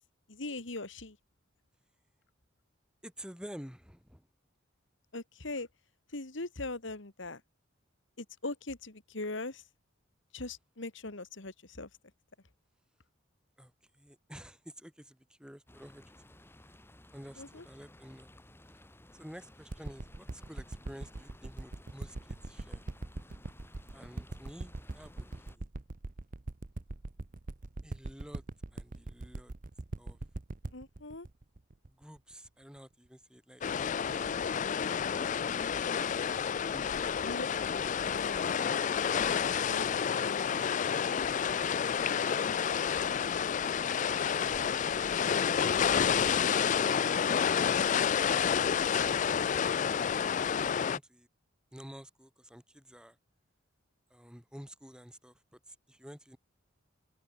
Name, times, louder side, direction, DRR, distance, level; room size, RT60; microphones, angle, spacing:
voice 1, 0.3-1.2 5.1-5.7 6.1-7.4 8.2-9.6 10.3-11.9 17.4-17.6 30.7-31.3 37.2-37.5 38.1-38.7 39.6-40.5, left 2 dB, 65° left, 2.1 m, -40 dB
voice 2, 3.0-4.3 13.6-16.4 17.1-18.3 19.1-22.9 23.9-25.7 27.8-28.4 28.7-29.5 30.0-30.2 31.9-34.4 35.1-35.8 36.6-37.3 38.0-38.7 39.1-39.9 41.2-41.6 41.9-42.6 42.9-43.2 44.0-48.0 48.7-50.3 50.6-51.3 51.7-53.2 54.1-56.4, equal, 5° right, 4.8 m, -51 dB
sound 1, 15.7-25.6, left 1 dB, 10° left, 2.4 m, -57 dB
sound 2, 19.7-32.5 33.1-33.2, right 2 dB, 45° right, 0.8 m, -41 dB
sound 3, 33.6-51.0, left 7 dB, 40° left, 0.4 m, -29 dB
open air
head